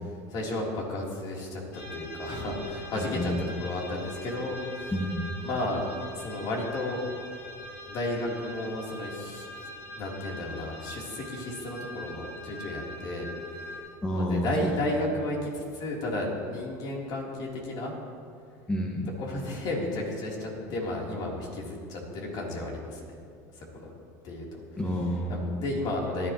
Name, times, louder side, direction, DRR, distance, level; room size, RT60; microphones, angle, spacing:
voice 1, 0.3-4.9 5.4-7.0 7.9-9.7 10.0-13.3 13.5-13.9 14.1-17.9 19.2-23.0 23.6-23.9 24.2-24.4 25.3-26.3, left 1 dB, 50° left, -2 dB, 3.3 m, -33 dB
sound 1, 1.7-13.8, equal, 85° left, 2.5 m, -42 dB
voice 2, 3.0-3.5 4.9-5.4 14.0-14.7 18.7-19.1 24.8-25.6, equal, 10° left, -2 dB, 1.5 m, -29 dB
17.5 x 11.0 x 3.0 m, 2.3 s
supercardioid pair, 105°, 9 cm